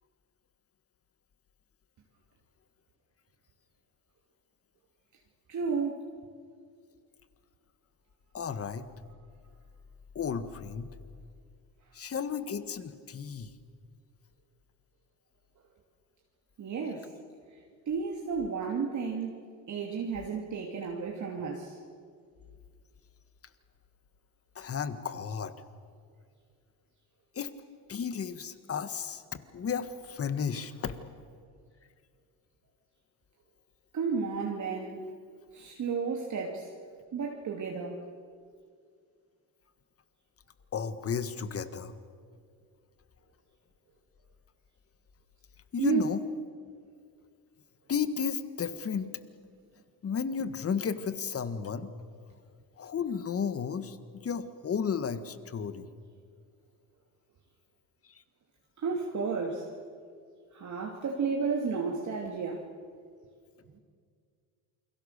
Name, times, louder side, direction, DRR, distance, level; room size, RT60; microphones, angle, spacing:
voice 1, 5.5-6.1 16.6-17.1 17.9-21.8 33.9-35.1 35.5-36.7 37.1-38.0 45.8-46.1 58.8-59.7 60.5-62.6 63.7-63.8, right 5 dB, 45° right, 0 dB, 2.7 m, -32 dB
voice 2, 8.3-8.9 10.1-10.9 11.9-13.5 24.5-25.5 27.3-27.5 27.9-30.9 40.7-41.9 45.7-46.2 47.9-49.1 50.0-51.9 52.8-55.9, left 6 dB, 35° left, 12 dB, 1.6 m, -33 dB
29.0 x 23.0 x 6.7 m, 2.1 s
cardioid pair, 100°, 40 cm